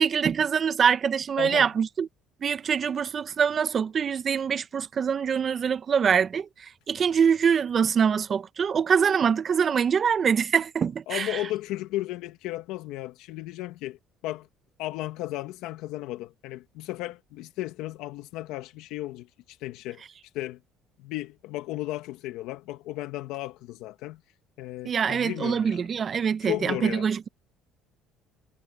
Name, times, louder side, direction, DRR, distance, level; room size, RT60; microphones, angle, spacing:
voice 1, 0.0-2.1 2.4-11.4 24.8-27.3, right 7 dB, 40° right, 1.0 m, -24 dB
voice 2, 1.4-1.7 11.1-14.0 14.2-14.5 14.8-20.0 20.3-20.6 21.0-24.2 24.6-25.8 26.4-27.1, left 16 dB, 80° left, 1.3 m, -34 dB
cardioid pair, 100°, 0 cm